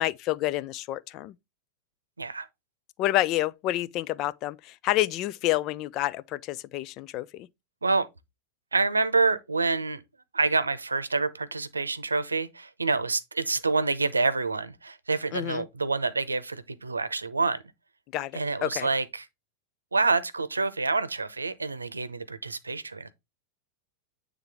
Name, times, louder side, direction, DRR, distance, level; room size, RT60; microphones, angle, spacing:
voice 1, 0.0-1.3 3.0-7.5 15.3-15.7 18.1-18.9, left 15 dB, 45° left, 0.4 m, -29 dB
voice 2, 8.7-10.0 10.3-17.6 18.3-19.2 19.9-23.1, right 3 dB, 90° right, 0.7 m, -27 dB
9.0 x 3.5 x 3.4 m
hypercardioid pair, 95°, 0 cm